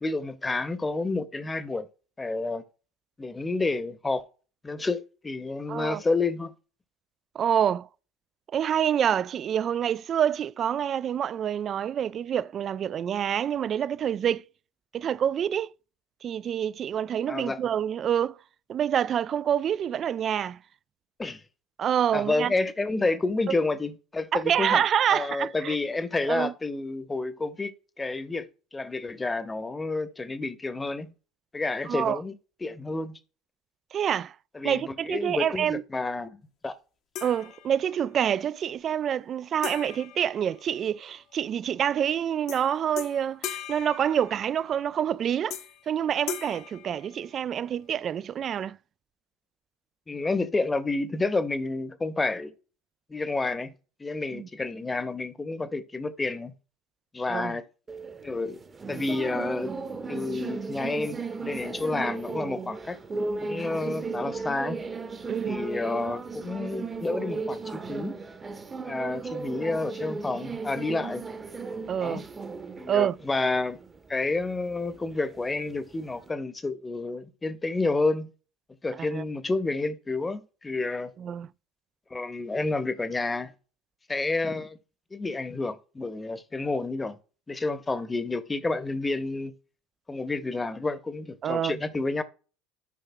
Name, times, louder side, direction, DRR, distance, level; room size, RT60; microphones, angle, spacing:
voice 1, 0.0-1.9 2.2-2.6 3.2-4.2 4.6-6.5 17.3-17.6 21.2-21.4 22.1-24.8 25.1-27.7 28.0-31.1 31.5-32.3 32.6-33.2 34.5-36.7 50.1-52.5 53.1-53.7 54.0-56.5 57.1-57.6 58.2-58.6 58.9-59.7 60.1-63.0 63.4-64.8 65.5-68.2 68.8-71.2 72.0-72.2 72.8-73.8 74.1-78.3 78.8-81.1 82.1-83.5 84.1-84.8 85.1-87.2 87.5-89.5 90.1-92.2, left 3 dB, 15° left, 0.9 m, -30 dB
voice 2, 5.7-6.0 7.3-7.9 8.5-14.4 14.9-15.7 16.2-18.4 18.7-20.6 21.8-22.5 24.3-25.8 26.3-26.5 31.9-32.2 33.9-34.3 34.6-35.8 37.2-45.6 45.9-48.8 54.3-54.5 57.3-57.6 65.3-65.6 71.9-72.2 72.9-73.2 79.1-79.2 81.2-81.5 91.4-91.8, right 9 dB, 40° right, 0.3 m, -27 dB
sound 1, 37.1-38.1 39.6-41.2 42.5-42.7 43.0-44.8 45.5-45.9 46.3-47.7, left 10 dB, 55° left, 0.9 m, -40 dB
sound 2, 57.9-76.3, right 4 dB, 25° right, 0.9 m, -36 dB
12.0 x 5.4 x 2.2 m
hypercardioid pair, 70°, 0 cm